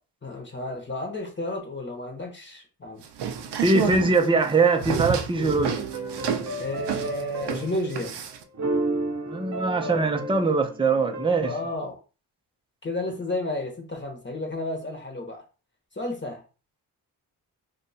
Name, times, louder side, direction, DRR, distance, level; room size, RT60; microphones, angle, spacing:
voice 1, 0.2-3.0 6.6-8.2 11.5-12.0 12.8-15.4 15.9-16.4, left 1 dB, 30° left, 1.1 m, -32 dB
sound 1, 3.0-8.4, right 7 dB, 80° right, 0.6 m, -30 dB
voice 2, 3.6-5.9 9.3-11.5, right 3 dB, 15° right, 0.6 m, -22 dB
sound 2, 5.4-8.0 8.5-11.8, right 2 dB, 45° right, 0.8 m, -32 dB
2.6 x 2.4 x 4.1 m
cardioid pair, 65°, 41 cm